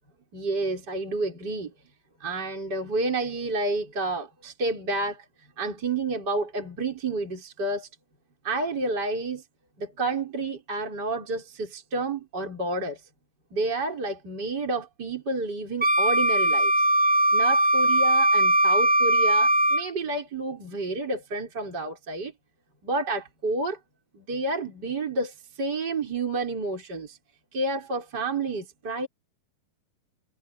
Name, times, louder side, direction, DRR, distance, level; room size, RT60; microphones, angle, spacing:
voice 1, 0.3-1.7 2.2-5.2 5.6-7.9 8.4-9.4 9.8-13.0 13.5-16.7 17.3-22.3 22.8-23.8 24.1-27.2 27.5-29.1, right 2 dB, 25° right, 5.9 m, -30 dB
Wind instrument woodwind instrument, 15.8-19.9, right 1 dB, 5° right, 1.4 m, -20 dB
omnidirectional pair, 4.5 m